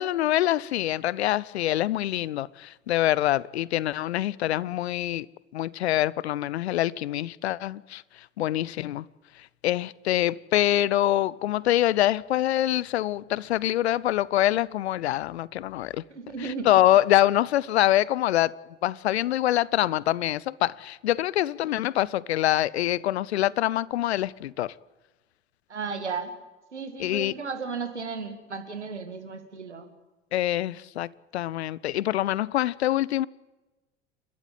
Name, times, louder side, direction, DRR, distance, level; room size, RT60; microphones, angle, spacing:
voice 1, 0.0-5.3 5.5-8.0 8.4-9.1 9.6-16.0 16.4-18.5 18.8-24.7 27.0-27.3 30.3-33.3, left 14 dB, 70° left, 0.7 m, -25 dB
voice 2, 16.1-16.7 25.7-26.3 26.7-29.9, right 5 dB, 80° right, 2.4 m, -34 dB
30.0 x 13.0 x 9.2 m
figure-of-eight pair, 70°, 34 cm